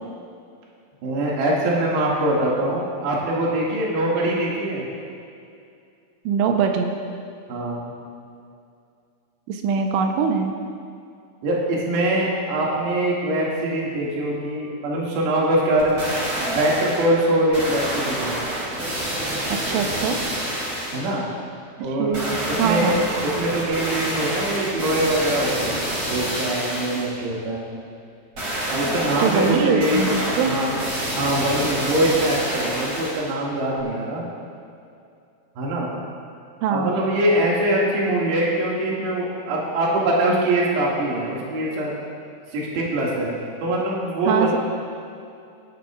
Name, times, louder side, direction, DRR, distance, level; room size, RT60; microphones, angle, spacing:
voice 1, 1.0-4.9 7.5-7.9 11.4-16.0 16.4-18.4 20.9-21.2 21.8-22.2 22.5-23.0 23.2-27.7 28.7-30.1 30.5-30.8 31.2-34.2 35.6-35.9 36.7-41.9 42.5-44.6, right 1 dB, 60° right, -5 dB, 3.9 m, -23 dB
voice 2, 6.3-7.0 9.5-10.5 19.5-20.2 22.0-23.0 29.2-30.6 36.6-36.9 44.3-44.5, right 6 dB, 80° right, 4 dB, 3.2 m, -22 dB
sound 1, 15.8-17.1 17.5-21.1 22.1-27.1 28.4-33.3 33.8-33.9, right 1 dB, 30° right, 3.4 m, -27 dB
20.5 x 11.0 x 2.5 m, 2.5 s
omnidirectional pair, 5.9 m